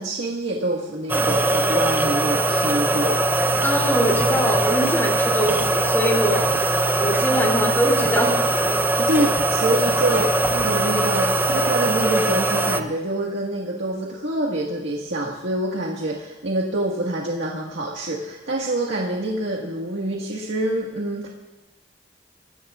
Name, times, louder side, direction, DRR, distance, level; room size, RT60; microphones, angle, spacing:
voice 1, 0.0-3.2 9.0-21.3, right 1 dB, 85° right, -3 dB, 1.7 m, -26 dB
sound 1, 1.1-12.8, right 1 dB, 10° right, 0.7 m, -21 dB
voice 2, 3.6-8.4, right 1 dB, 15° left, -1 dB, 2.9 m, -23 dB
24.0 x 16.5 x 2.5 m, 1.0 s
head